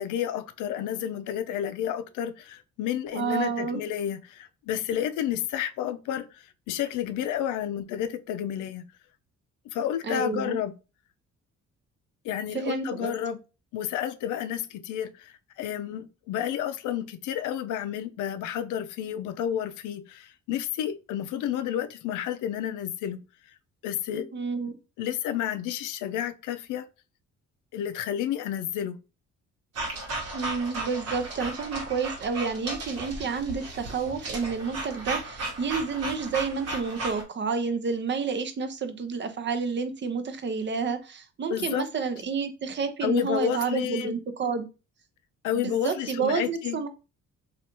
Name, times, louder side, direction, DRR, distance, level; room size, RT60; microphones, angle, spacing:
voice 1, 0.0-8.8 9.7-10.7 12.2-13.4 13.7-23.2 23.8-24.3 24.6-26.8 27.7-29.0 41.5-41.8 43.0-44.1 45.4-46.8, left 10 dB, 85° left, 0.5 m, -31 dB
voice 2, 3.1-3.8 10.0-10.6 12.5-13.1 24.1-24.8 30.3-44.7 45.5-46.9, right 5 dB, 40° right, 0.5 m, -30 dB
sound 1, 29.7-37.2, right 2 dB, 55° right, 1.1 m, -35 dB
3.2 x 2.4 x 2.9 m
cardioid pair, 90°, 30 cm